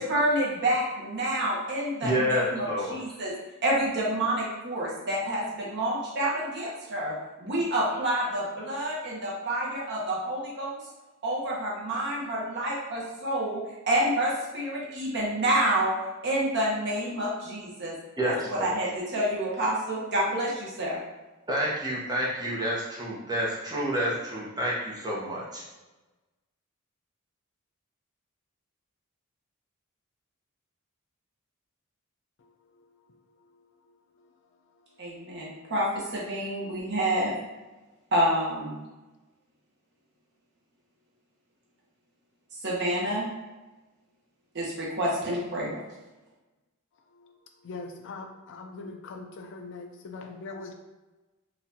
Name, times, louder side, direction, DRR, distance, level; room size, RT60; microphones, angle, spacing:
voice 1, 0.0-3.3 3.6-10.7 11.2-13.6 13.9-15.9 16.2-17.9 18.2-21.0 35.0-37.3 38.1-38.7 42.6-43.3 44.5-45.8, right 1 dB, 55° right, -5 dB, 0.9 m, -28 dB
voice 2, 2.0-3.0 18.2-18.7 21.5-25.6, equal, 20° right, -5 dB, 0.8 m, -29 dB
voice 3, 47.6-50.7, left 3 dB, 60° left, 3 dB, 0.4 m, -41 dB
4.1 x 2.5 x 2.7 m, 1.1 s
head